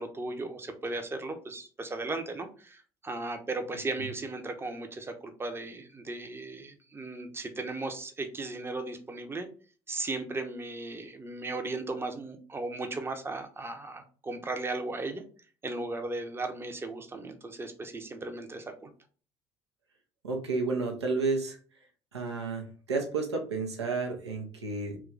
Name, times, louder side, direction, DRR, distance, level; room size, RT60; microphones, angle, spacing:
voice 1, 0.0-9.5 9.9-15.2 15.6-18.9, right 2 dB, 15° right, 6 dB, 0.6 m, -36 dB
voice 2, 20.2-21.6 22.1-25.0, right 3 dB, 85° right, 2 dB, 0.6 m, -31 dB
3.0 x 2.3 x 3.6 m, 0.40 s
figure-of-eight pair, 55°, 14 cm